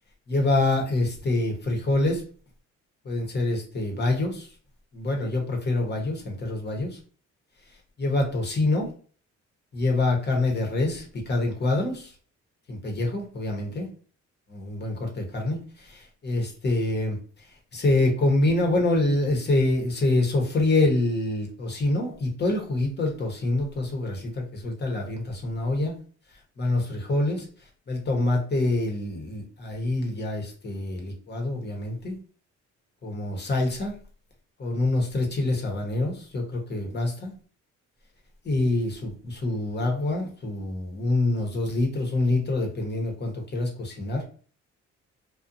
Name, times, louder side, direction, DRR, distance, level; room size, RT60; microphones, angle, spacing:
voice 1, 0.3-2.2 3.0-4.5 4.9-7.0 8.0-8.9 9.7-12.1 12.7-13.9 14.5-17.2 17.7-25.9 26.6-27.4 27.9-32.2 33.0-33.9 34.6-37.3 38.4-44.2, left 2 dB, 35° left, 1 dB, 1.0 m, -26 dB
2.6 x 2.4 x 2.5 m, 0.42 s
cardioid pair, 90°, 30 cm